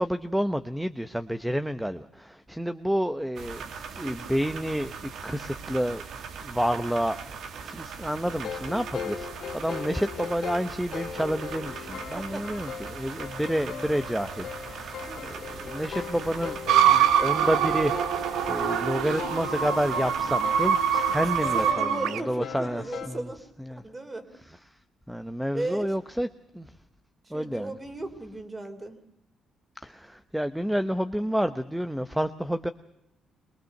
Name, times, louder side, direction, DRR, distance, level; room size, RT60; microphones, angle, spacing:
voice 1, 0.0-3.6 4.0-4.9 5.2-6.0 6.4-9.3 9.5-23.2 23.7-23.8 25.1-26.3 26.5-26.7 27.3-27.7 29.8-32.7, equal, 5° right, 10 dB, 0.9 m, -29 dB
sound 1, 3.4-21.7, right 6 dB, 70° right, 2.1 m, -40 dB
sound 2, 8.2-23.1, left 7 dB, 60° left, 2.4 m, -39 dB
sound 3, 16.7-22.2, right 9 dB, 85° right, 1.1 m, -24 dB
voice 2, 21.5-23.4 23.7-24.3 25.5-25.9 27.2-29.0, right 2 dB, 20° right, 8 dB, 3.1 m, -36 dB
23.5 x 19.5 x 6.6 m, 0.80 s
cardioid pair, 90°, 0 cm